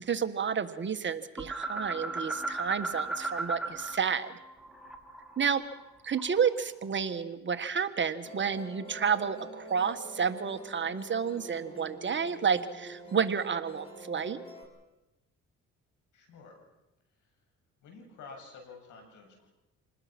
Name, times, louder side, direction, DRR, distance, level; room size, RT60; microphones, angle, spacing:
voice 1, 0.0-4.4 5.4-5.6 6.0-14.4, right 6 dB, 40° right, 9 dB, 1.4 m, -30 dB
sound 1, 1.4-4.0 4.2-6.5, right 2 dB, ahead, 2.8 m, -36 dB
Musical instrument, 8.2-14.6, right 2 dB, 20° left, 5.4 m, -47 dB
voice 2, 16.1-16.6 17.1-17.4 17.8-19.5, left 4 dB, 80° left, 3 dB, 7.3 m, -50 dB
27.0 x 20.0 x 6.1 m, 0.96 s
cardioid pair, 90°, 30 cm